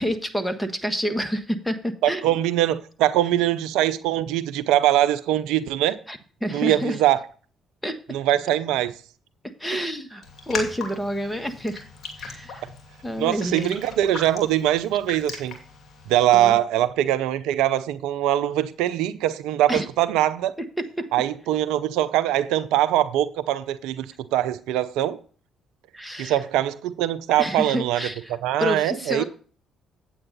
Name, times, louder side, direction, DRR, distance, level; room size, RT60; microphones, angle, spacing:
voice 1, 0.0-2.3 6.1-7.0 7.8-8.0 9.4-11.8 12.2-12.7 13.0-13.8 16.3-16.6 19.7-19.9 20.6-21.1 25.9-26.4 27.3-29.2, equal, 5° left, 1.3 m, -29 dB
voice 2, 2.0-6.0 6.5-7.2 8.1-8.9 13.2-15.6 16.1-20.5 21.1-24.1 24.3-25.2 26.2-28.0 28.4-29.2, right 12 dB, 80° right, 0.5 m, -22 dB
Raindrop, 10.2-16.5, left 4 dB, 50° left, 2.7 m, -38 dB
8.8 x 7.9 x 4.0 m
supercardioid pair, 60°, 0 cm